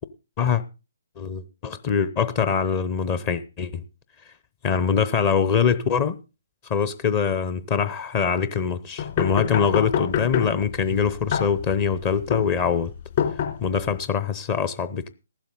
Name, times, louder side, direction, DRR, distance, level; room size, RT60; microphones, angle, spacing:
voice 1, 1.2-3.8 4.6-6.2 6.7-12.9 13.6-15.1, left 6 dB, 30° left, 0.8 m, -23 dB
sound 1, 9.0-14.0, left 8 dB, 45° left, 3.3 m, -27 dB
14.5 x 11.5 x 4.0 m
figure-of-eight pair, 135°, 0 cm